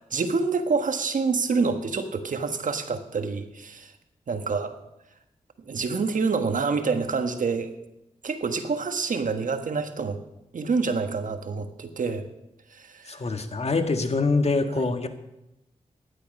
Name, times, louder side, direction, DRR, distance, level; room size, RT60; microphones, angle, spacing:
voice 1, 0.0-3.9 4.3-4.8 5.6-7.7 8.2-10.2 10.5-12.3 12.7-13.4 14.7-14.9, right 4 dB, 70° right, 8 dB, 1.4 m, -27 dB
voice 2, 13.1-15.1, left 3 dB, 50° left, 7 dB, 1.8 m, -24 dB
15.5 x 11.5 x 5.4 m, 0.90 s
cardioid pair, 45°, 14 cm